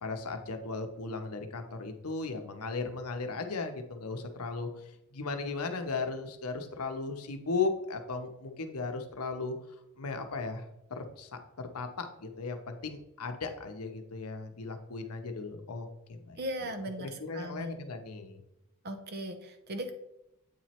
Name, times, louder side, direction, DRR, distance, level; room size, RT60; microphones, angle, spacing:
voice 1, 0.0-9.6 10.0-10.6 10.9-16.7 17.0-18.4, left 4 dB, 90° left, 6 dB, 0.8 m, -36 dB
voice 2, 16.4-17.7 18.8-19.9, right 1 dB, 45° right, 8 dB, 0.7 m, -38 dB
8.3 x 3.1 x 4.3 m, 0.87 s
head